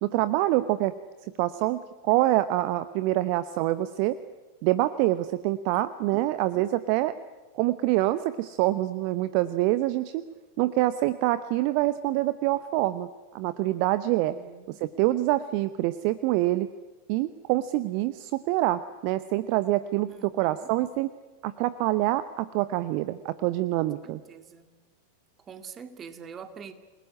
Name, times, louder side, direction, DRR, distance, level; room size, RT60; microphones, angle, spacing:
voice 1, 0.0-0.9 1.2-4.1 4.6-7.1 7.5-10.2 10.6-14.4 14.7-16.7 17.1-21.1 21.4-24.2, right 16 dB, 45° right, 14 dB, 0.9 m, -26 dB
voice 2, 14.3-14.8 20.1-20.7 24.0-24.7 25.4-26.7, right 6 dB, 25° right, 8 dB, 2.3 m, -45 dB
28.0 x 20.5 x 9.7 m, 1.3 s
figure-of-eight pair, 90°, 0 cm